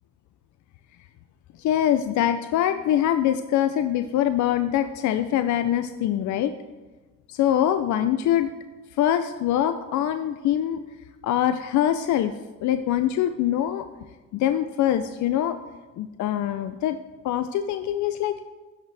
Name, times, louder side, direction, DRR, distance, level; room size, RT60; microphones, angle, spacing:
voice 1, 1.6-6.5 7.3-8.5 9.0-10.8 11.2-12.3 12.6-13.8 14.3-15.6 16.0-17.0 17.2-18.4, left 11 dB, 70° left, 9 dB, 0.5 m, -23 dB
15.5 x 5.6 x 3.3 m, 1.3 s
cardioid pair, 90°, 30 cm